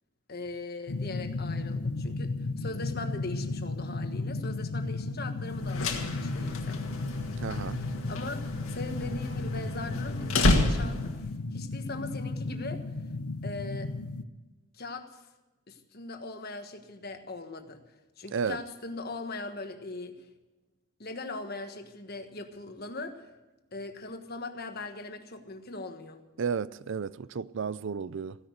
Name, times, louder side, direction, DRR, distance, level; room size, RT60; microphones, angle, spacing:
voice 1, 0.3-6.8 7.6-11.1 11.5-12.8 13.4-13.9 14.7-15.2 15.7-17.8 18.2-20.2 21.0-23.3 23.7-26.2, left 2 dB, 45° left, 1.4 m, -40 dB
sound 1, 0.9-14.2, left 3 dB, 90° left, 0.9 m, -34 dB
sound 2, 5.5-11.3, left 2 dB, 65° left, 2.0 m, -30 dB
voice 2, 7.4-7.8 18.3-18.6 26.4-28.4, right 6 dB, 55° right, 0.4 m, -32 dB
15.5 x 10.5 x 8.0 m
head